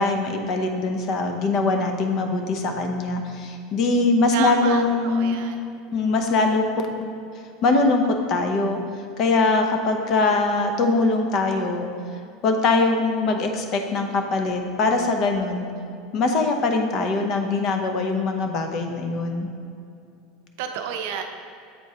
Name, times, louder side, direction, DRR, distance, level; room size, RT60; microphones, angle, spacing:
voice 1, 0.0-5.4 5.9-7.1 7.6-8.0 8.3-8.8 9.2-11.9 12.4-15.7 16.1-19.5, left 3 dB, 50° left, 4 dB, 0.7 m, -22 dB
voice 2, 4.3-5.6 10.1-10.5 20.6-21.2, right 8 dB, 70° right, 5 dB, 0.5 m, -31 dB
7.7 x 4.4 x 2.8 m, 2.5 s
supercardioid pair, 120°, 0 cm